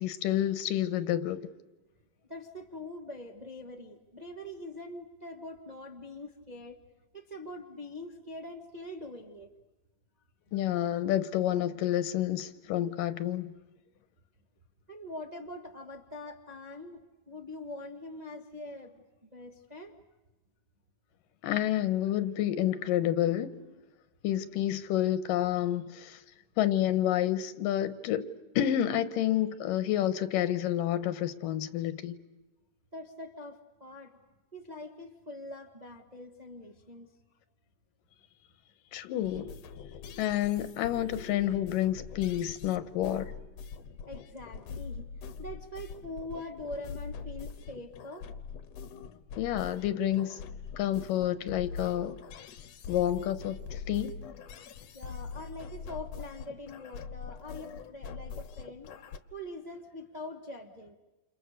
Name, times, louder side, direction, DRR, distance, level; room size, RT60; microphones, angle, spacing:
voice 1, 0.0-1.4 10.5-13.5 21.4-23.5 24.2-26.2 26.6-28.3 28.6-32.2 38.9-39.5 40.2-43.3 49.4-50.4 50.8-52.1 52.9-53.6 53.9-54.2, left 12 dB, 85° left, 2.8 m, -29 dB
voice 2, 2.3-6.8 7.1-9.5 14.9-19.9 32.9-34.2 34.5-37.1 44.1-48.3 54.9-58.9 59.3-60.9, left 1 dB, 20° right, 1.0 m, -43 dB
sound 1, 39.2-59.2, left 6 dB, 60° left, 2.0 m, -43 dB
29.5 x 28.5 x 6.6 m
omnidirectional pair, 3.8 m